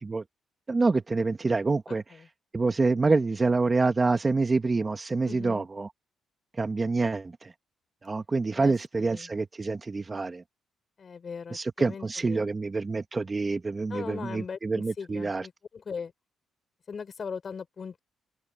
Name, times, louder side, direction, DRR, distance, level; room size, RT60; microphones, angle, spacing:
voice 1, 0.7-2.0 2.5-5.9 6.6-7.5 8.0-10.4 11.5-15.4, right 3 dB, 25° right, 1.5 m, -27 dB
voice 2, 1.9-2.3 5.2-5.7 8.5-8.7 9.0-9.3 11.0-12.5 13.9-16.1 16.9-18.0, left 6 dB, 45° left, 6.3 m, -39 dB
cardioid pair, 90°, 0 cm